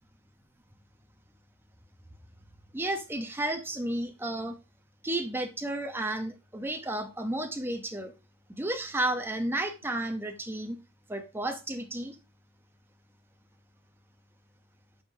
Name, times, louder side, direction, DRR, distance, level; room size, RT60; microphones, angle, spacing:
voice 1, 2.7-4.6 5.0-8.1 8.5-10.8 11.1-12.2, right 1 dB, 10° right, 6 dB, 0.8 m, -32 dB
8.4 x 5.5 x 2.7 m, 0.28 s
head